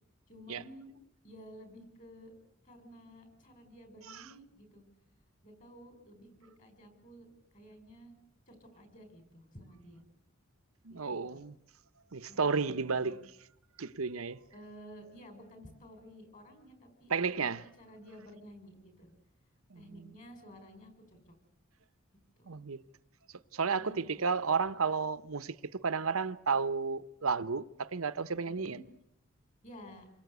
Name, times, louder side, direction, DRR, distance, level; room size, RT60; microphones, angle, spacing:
voice 1, 0.3-0.9 1.2-2.3 2.6-4.8 5.4-7.3 7.5-8.1 8.5-10.0 10.9-11.4 12.3-13.2 14.5-19.1 19.7-21.3 22.4-22.6 23.8-24.2 28.5-28.8 29.6-30.1, equal, 35° left, 5.9 m, -53 dB
voice 2, 10.8-11.5 12.1-13.2 13.8-14.4 17.1-17.6 19.7-20.1 22.5-22.8 23.5-28.8, right 5 dB, 75° right, 0.9 m, -32 dB
28.0 x 22.5 x 8.2 m
head